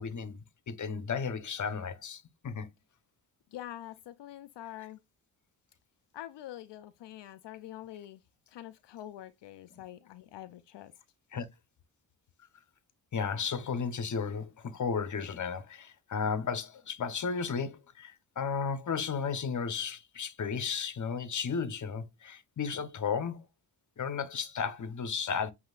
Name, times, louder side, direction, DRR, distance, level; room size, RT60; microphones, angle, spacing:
voice 1, 0.0-2.7 9.7-9.8 11.3-11.5 13.1-23.4 24.0-25.5, left 6 dB, 45° left, 0.8 m, -34 dB
voice 2, 3.5-5.0 6.1-8.2 8.5-10.9, left 12 dB, 80° left, 0.5 m, -45 dB
7.7 x 2.8 x 2.3 m
cardioid pair, 75°, 41 cm